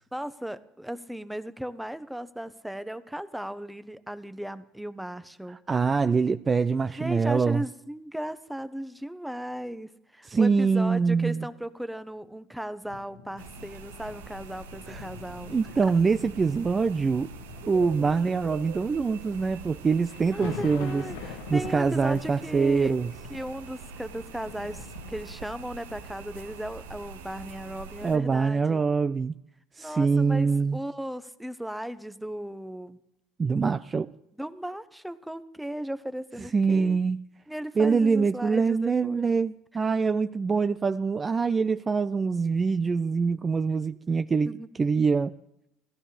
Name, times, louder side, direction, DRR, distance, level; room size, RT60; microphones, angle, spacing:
voice 1, 0.1-5.6 7.0-15.6 20.3-22.9 23.3-28.8 29.8-33.0 34.4-37.0 37.5-39.3 44.5-44.7, right 1 dB, 5° right, 13 dB, 1.0 m, -36 dB
voice 2, 5.7-7.6 10.3-11.5 14.9-15.0 15.5-17.3 17.7-23.1 28.0-29.3 29.8-30.8 33.4-34.1 36.4-37.2 37.8-44.5 44.8-45.3, right 5 dB, 30° right, 12 dB, 0.5 m, -24 dB
sound 1, 12.9-25.7 26.3-26.5, left 7 dB, 85° left, 1.4 m, -45 dB
sound 2, 13.4-28.2, right 4 dB, 90° right, 1.0 m, -44 dB
16.5 x 13.5 x 5.1 m, 0.81 s
hypercardioid pair, 75°, 0 cm